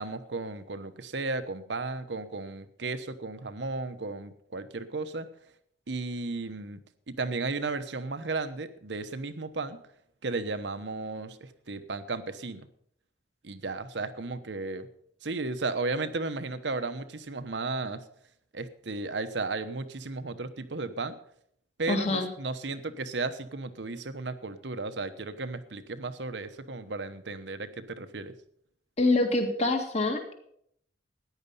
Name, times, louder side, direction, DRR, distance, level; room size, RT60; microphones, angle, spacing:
voice 1, 0.0-5.3 5.9-6.8 7.1-9.8 10.2-12.7 13.4-14.9 15.2-18.0 18.5-21.2 21.8-28.3, right 3 dB, 85° right, 10 dB, 1.0 m, -34 dB
voice 2, 21.9-22.3 29.0-30.3, left 2 dB, 40° left, 4 dB, 2.0 m, -25 dB
14.0 x 10.0 x 5.5 m, 0.69 s
head